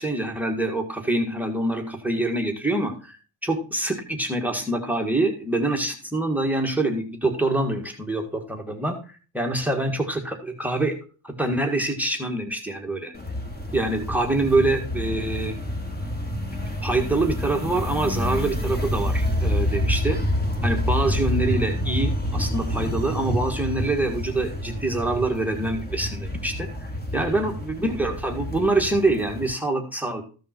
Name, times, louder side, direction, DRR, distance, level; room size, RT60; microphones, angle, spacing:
voice 1, 0.0-11.0 11.2-13.1 13.7-15.5 16.8-20.2 20.6-30.2, right 2 dB, 5° right, 5 dB, 1.6 m, -25 dB
sound 1, 13.2-29.5, left 1 dB, 20° left, 2.0 m, -28 dB
14.5 x 5.4 x 4.4 m, 0.36 s
cardioid pair, 120°, 49 cm